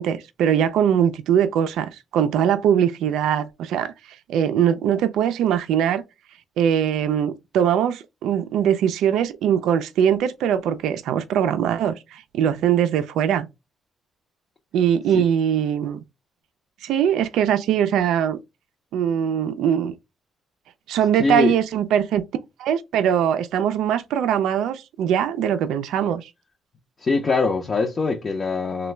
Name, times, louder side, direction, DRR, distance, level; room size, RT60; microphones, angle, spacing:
voice 1, 0.0-6.0 6.6-13.5 14.7-16.0 16.8-18.4 18.9-19.9 20.9-22.2 22.6-26.3, right 9 dB, 85° right, 0.3 m, -21 dB
voice 2, 21.2-21.5 27.0-28.9, left 4 dB, 40° left, 0.5 m, -22 dB
3.1 x 2.2 x 3.1 m
cardioid pair, 90°, 0 cm